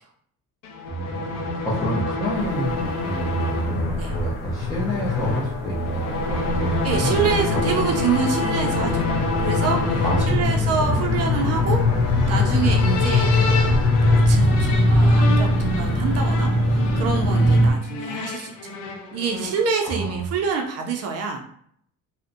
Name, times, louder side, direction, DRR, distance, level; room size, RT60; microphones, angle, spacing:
sound 1, 0.6-19.7, left 4 dB, 80° left, 0.5 m, -27 dB
voice 1, 0.9-7.4 7.9-8.0 10.0-11.0 17.4-17.5 19.8-20.2, right 2 dB, 10° left, -8 dB, 0.5 m, -28 dB
sound 2, 2.4-17.7, left 1 dB, 55° left, 0.8 m, -22 dB
voice 2, 6.8-9.1 9.4-11.8 12.1-18.7 19.1-21.4, right 5 dB, 50° right, 2 dB, 0.4 m, -27 dB
2.5 x 2.1 x 2.5 m, 0.64 s
cardioid pair, 145°, 32 cm